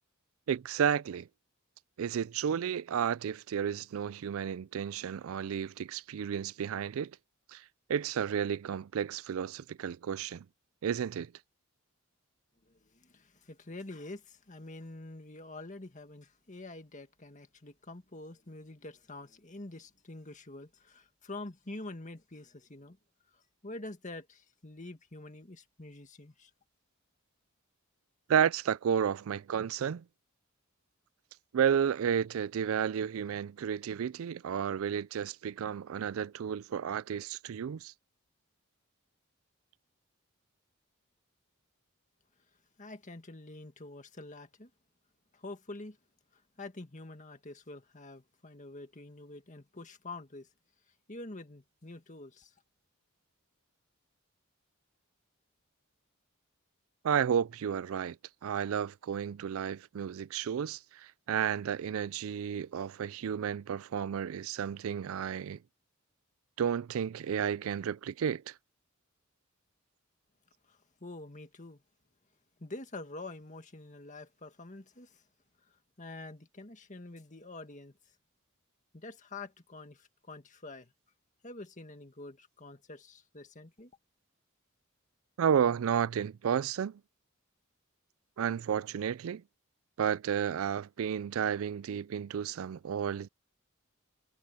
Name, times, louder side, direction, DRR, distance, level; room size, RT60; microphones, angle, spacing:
voice 1, 0.5-1.3 2.0-7.1 7.5-7.6 7.9-10.4 10.8-11.3 28.3-30.0 31.5-37.9 57.0-58.2 58.4-65.6 66.6-68.5 85.4-87.0 88.4-89.4 90.0-93.3, right 8 dB, 75° right, 0.4 m, -32 dB
voice 2, 12.6-23.0 23.3-26.5 42.8-44.7 45.3-46.0 46.3-50.5 51.1-52.6 70.6-71.8 72.6-75.3 75.6-78.0 78.9-80.9 81.4-83.9, left 2 dB, 35° left, 1.9 m, -46 dB
head